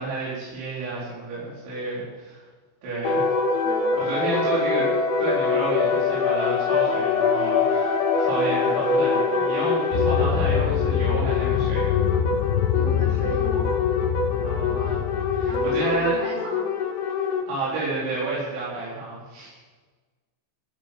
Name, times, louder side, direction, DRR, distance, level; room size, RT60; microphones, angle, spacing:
voice 1, 0.0-2.4 2.8-3.3 3.9-4.9 5.2-7.9 8.2-12.0 14.4-15.0 15.4-16.2 17.5-19.5, right 3 dB, 65° right, -8 dB, 6.6 m, -30 dB
sound 1, 3.0-17.4, left 4 dB, 60° left, 3.4 m, -24 dB
voice 2, 3.6-4.0 4.4-4.8 12.7-13.7 15.4-16.7, right 2 dB, 85° right, -5 dB, 8.7 m, -36 dB
sound 2, 9.9-15.8, left 10 dB, 80° left, 3.2 m, -25 dB
15.0 x 9.1 x 8.3 m, 1.3 s
omnidirectional pair, 5.8 m